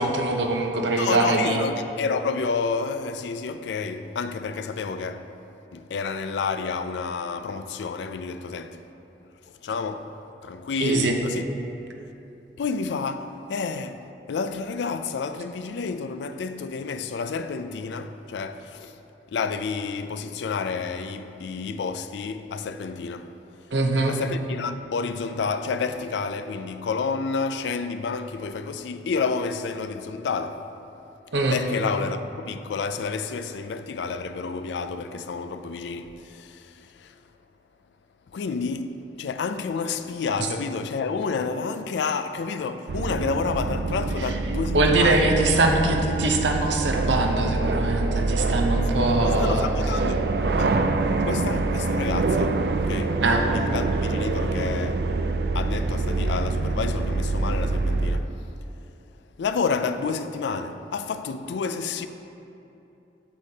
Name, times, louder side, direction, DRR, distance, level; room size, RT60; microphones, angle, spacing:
voice 1, 0.0-1.7 10.8-11.1 23.7-24.1 31.3-31.6 44.7-49.7 53.2-53.4, right 2 dB, 90° right, 0.8 m, -22 dB
voice 2, 1.0-5.3 5.7-8.8 9.6-11.4 12.6-19.0 19.3-23.3 24.1-30.7 31.5-37.1 38.3-45.3 49.2-50.3 50.5-50.7 51.2-53.2 53.5-55.1 55.5-58.3 59.4-62.1, left 5 dB, 80° left, 0.4 m, -30 dB
sound 1, 42.9-58.2, right 3 dB, 60° right, 0.3 m, -25 dB
8.3 x 8.1 x 2.8 m
head